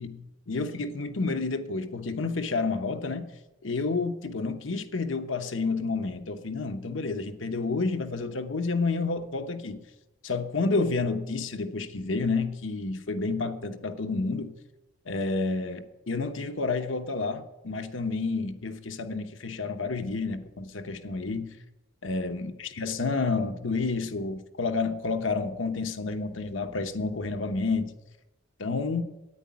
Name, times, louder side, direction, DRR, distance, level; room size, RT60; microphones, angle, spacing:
voice 1, 0.0-3.3 3.6-9.8 10.2-14.5 15.1-21.5 22.0-27.9 28.6-29.0, left 3 dB, 80° left, 1.0 m, -30 dB
9.9 x 9.4 x 9.8 m
head